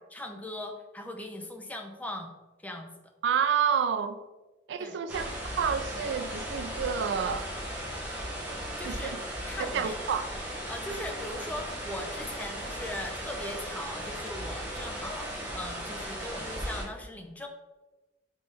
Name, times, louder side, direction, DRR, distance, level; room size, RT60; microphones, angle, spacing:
voice 1, 0.1-2.3 2.6-2.9 4.8-5.0 8.8-9.1 9.4-9.9 10.7-17.5, left 1 dB, 10° left, 4 dB, 0.4 m, -39 dB
voice 2, 3.2-4.2 4.7-5.3 5.6-7.5 8.8-9.2 9.6-10.3, right 7 dB, 75° right, 10 dB, 0.3 m, -29 dB
sound 1, 5.1-16.8, equal, 10° right, 1.0 m, -37 dB
3.7 x 3.7 x 3.5 m, 1.1 s
head